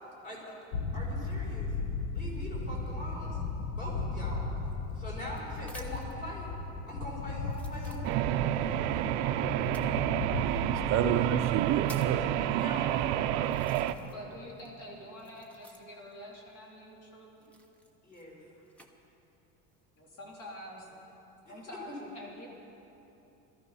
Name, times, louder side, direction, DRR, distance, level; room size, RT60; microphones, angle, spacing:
sound 1, 0.7-11.4, left 3 dB, 70° left, 1.2 m, -36 dB
voice 1, 0.9-1.7 2.1-3.4 3.8-4.5 4.9-6.5 6.9-8.0 8.5-8.8 12.5-13.3 18.0-18.4 21.4-21.9, equal, 30° left, -4 dB, 4.4 m, -42 dB
sound 2, 4.6-6.2 6.9-7.0 7.5-8.5 9.6-9.9 10.8-10.9 11.4-12.2 12.9-13.0 13.4-14.3 14.6-16.1 17.3-18.9 19.6-20.0, equal, 5° left, 0.7 m, -53 dB
sound 3, 8.0-13.9, right 12 dB, 90° right, 0.7 m, -29 dB
voice 2, 10.4-13.6, right 9 dB, 40° right, 5 dB, 0.6 m, -32 dB
voice 3, 14.0-17.4 20.0-21.0 21.4-22.5, equal, 45° left, -2 dB, 2.9 m, -47 dB
19.0 x 13.5 x 5.6 m, 3.0 s
cardioid pair, 175°, 34 cm